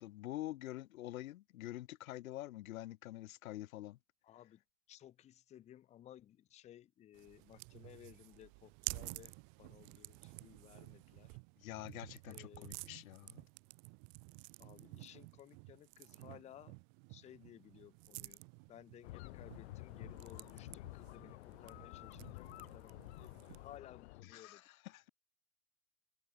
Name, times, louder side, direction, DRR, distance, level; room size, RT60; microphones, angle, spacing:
voice 1, 0.0-4.0 11.6-13.4 24.2-25.0, left 15 dB, 80° left, 1.6 m, -46 dB
voice 2, 4.2-4.6 4.9-11.4 12.3-12.8 14.6-16.8 17.1-18.4 18.7-24.6, left 12 dB, 15° left, 1.1 m, -58 dB
sound 1, 7.1-23.8, right 40 dB or more, 35° right, 1.2 m, -52 dB
sound 2, 19.0-24.2, left 20 dB, 50° left, 1.1 m, -51 dB
open air
supercardioid pair, 175°, 41 cm